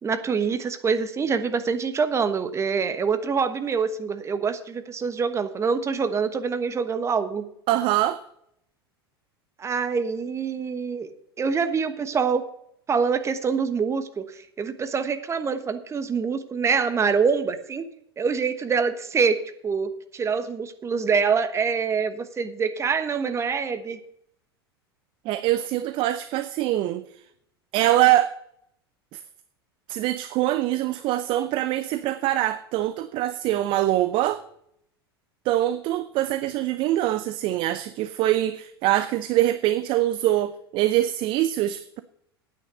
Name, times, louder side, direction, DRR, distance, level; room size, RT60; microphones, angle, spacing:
voice 1, 0.0-7.5 9.6-11.1 11.4-12.5 12.9-17.9 18.2-24.0, right 5 dB, 20° right, 1.2 m, -25 dB
voice 2, 7.7-8.2 25.3-27.0 27.7-28.3 29.1-29.2 29.9-34.4 35.4-42.0, right 14 dB, 40° right, 0.6 m, -23 dB
9.6 x 9.2 x 6.7 m
figure-of-eight pair, 85°, 13 cm